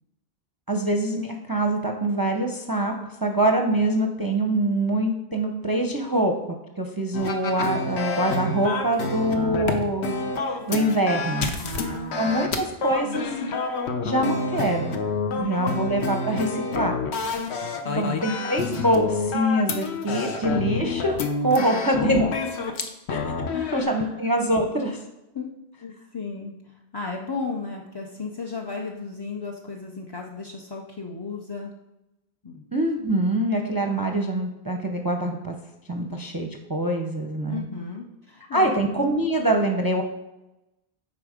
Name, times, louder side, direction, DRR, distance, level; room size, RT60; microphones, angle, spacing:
voice 1, 0.7-2.9 3.2-6.3 6.8-10.1 10.7-11.5 12.2-13.4 14.0-15.0 15.4-16.9 18.0-21.2 21.4-22.3 23.1-23.2 23.7-25.0 32.7-35.5 35.9-37.6 38.5-40.0, right 1 dB, 25° right, 3 dB, 0.6 m, -24 dB
sound 1, 7.1-23.8, left 4 dB, 75° left, 1.1 m, -28 dB
voice 2, 11.6-12.5 15.3-15.8 17.8-18.2 21.5-21.8 23.5-24.2 25.3-25.5 25.8-31.7 32.4-32.6 37.5-38.8, left 4 dB, 30° left, 0 dB, 0.5 m, -35 dB
8.2 x 4.9 x 5.0 m, 0.96 s
omnidirectional pair, 1.1 m